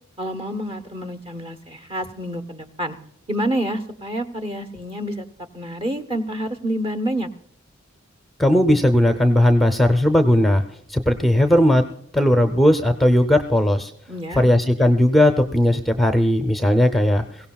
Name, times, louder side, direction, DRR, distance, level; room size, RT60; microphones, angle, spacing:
voice 1, 0.2-3.0 3.3-5.3 5.5-7.3 14.1-14.4, right 1 dB, 30° right, 7 dB, 1.0 m, -28 dB
voice 2, 8.4-10.6 10.9-11.9 12.1-13.9 14.4-17.2, left 1 dB, ahead, 7 dB, 0.6 m, -17 dB
22.0 x 16.5 x 2.3 m, 0.65 s
head